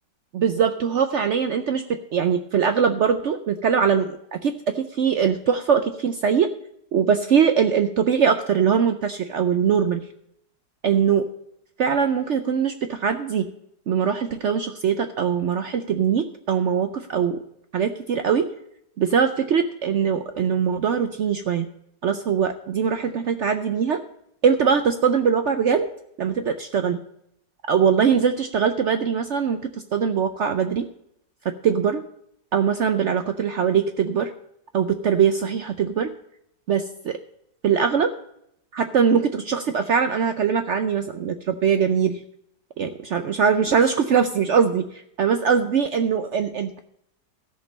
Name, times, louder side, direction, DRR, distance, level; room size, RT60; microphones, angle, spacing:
voice 1, 0.3-6.5 6.9-10.0 10.8-11.2 11.8-13.5 13.9-17.4 17.7-18.5 19.0-21.7 22.0-24.0 24.4-25.9 26.2-27.0 27.7-30.9 31.6-32.0 32.5-34.3 34.7-36.1 36.7-37.2 37.6-38.1 38.7-42.2 42.8-46.8, right 7 dB, 80° right, 8 dB, 0.6 m, -22 dB
13.5 x 5.3 x 7.2 m, 0.74 s
omnidirectional pair, 1.9 m